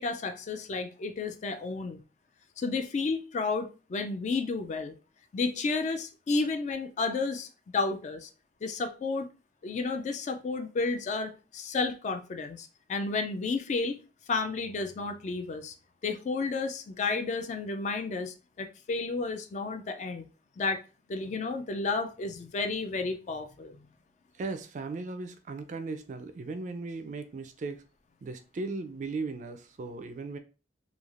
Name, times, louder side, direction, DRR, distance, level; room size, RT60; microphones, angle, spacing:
voice 1, 0.0-2.0 2.6-4.9 5.3-8.3 8.6-9.3 9.6-14.0 14.3-15.7 16.0-20.3 20.6-20.8 21.1-23.8, left 3 dB, 40° left, 0.3 m, -32 dB
voice 2, 24.4-27.8 28.2-30.4, right 3 dB, 45° right, 0.3 m, -37 dB
3.1 x 2.4 x 2.4 m
head